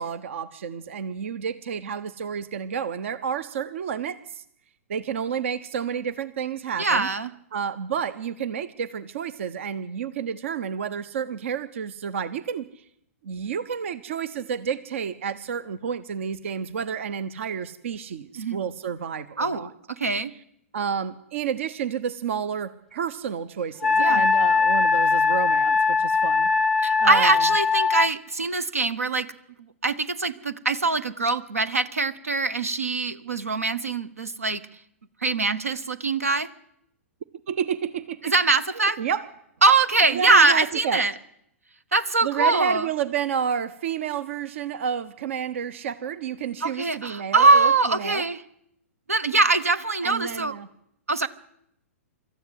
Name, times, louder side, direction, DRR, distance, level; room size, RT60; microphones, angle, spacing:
voice 1, 0.0-4.4 4.9-7.1 7.5-12.8 13.2-19.7 20.7-26.5 27.0-27.5 37.5-38.3 39.0-39.2 40.1-41.0 42.2-48.3 50.0-50.7, right 7 dB, 65° right, 17 dB, 0.9 m, -30 dB
voice 2, 6.8-7.3 18.4-18.6 19.4-20.3 24.0-24.2 26.8-29.3 29.6-34.6 35.2-36.5 38.2-39.0 39.6-41.1 41.9-42.9 46.6-48.4 49.1-50.6 51.1-51.3, right 3 dB, 85° right, 17 dB, 1.2 m, -22 dB
Wind instrument woodwind instrument, 23.8-28.1, left 4 dB, 5° left, 0.8 m, -21 dB
25.0 x 13.5 x 8.2 m, 0.77 s
hypercardioid pair, 115°, 8 cm